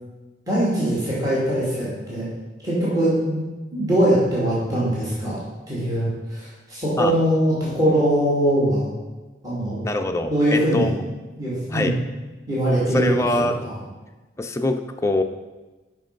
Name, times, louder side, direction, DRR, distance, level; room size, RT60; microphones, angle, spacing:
voice 1, 0.5-2.3 2.6-3.4 3.7-5.4 5.7-8.9 9.4-9.8 10.3-10.9 11.4-11.9 12.5-13.8, right 1 dB, 20° right, -9 dB, 2.1 m, -22 dB
voice 2, 9.8-10.9 11.7-12.0 12.9-13.7 14.4-15.2, left 2 dB, 15° left, 5 dB, 0.5 m, -23 dB
7.7 x 5.3 x 5.1 m, 1.2 s
head